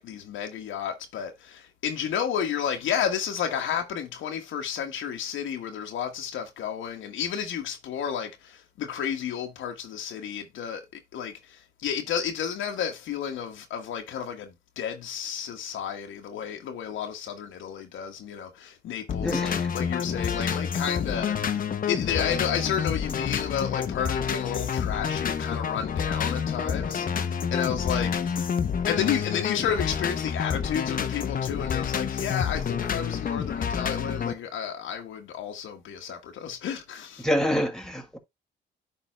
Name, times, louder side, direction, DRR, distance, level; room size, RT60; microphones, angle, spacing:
voice 1, 0.0-28.5 28.9-37.3, left 8 dB, 80° left, 1.3 m, -32 dB
sound 1, 19.1-34.3, left 7 dB, 45° left, 0.9 m, -28 dB
voice 2, 19.2-19.7 37.2-38.2, equal, 5° left, 1.9 m, -27 dB
10.5 x 3.8 x 3.3 m
cardioid pair, 90°, 20 cm